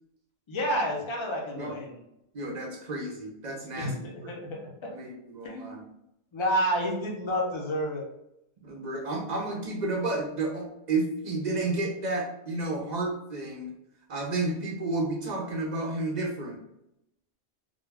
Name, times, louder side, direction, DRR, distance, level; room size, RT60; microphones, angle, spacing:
voice 1, 0.5-2.0 3.7-4.9 5.4-5.7 6.3-8.0, equal, 40° left, -1 dB, 0.4 m, -30 dB
voice 2, 2.3-3.9 4.2-4.3 4.9-5.8 8.6-13.7 14.1-16.6, right 2 dB, 55° right, -1 dB, 0.5 m, -31 dB
2.2 x 2.2 x 3.2 m, 0.83 s
omnidirectional pair, 1.1 m